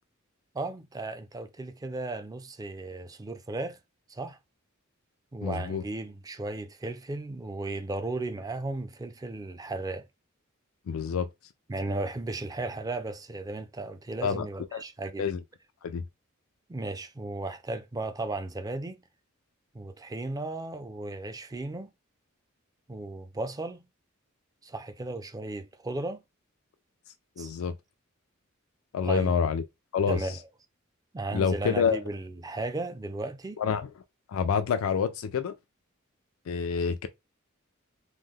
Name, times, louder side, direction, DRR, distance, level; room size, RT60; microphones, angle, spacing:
voice 1, 0.5-3.8 4.1-4.4 5.3-10.1 11.7-15.3 16.7-19.0 19.7-21.9 22.9-23.9 24.6-26.2 27.4-27.5 29.0-29.3 30.1-30.4 31.1-33.6, right 2 dB, 20° right, 0.4 m, -35 dB
voice 2, 5.4-5.8 10.9-11.3 14.2-14.5 14.7-14.8 15.2-15.4 15.8-16.0 27.4-27.7 28.9-29.6 29.9-30.2 31.3-32.0 33.6-33.9 34.3-35.5 36.5-37.1, left 6 dB, 85° left, 0.4 m, -27 dB
3.1 x 2.0 x 3.6 m
head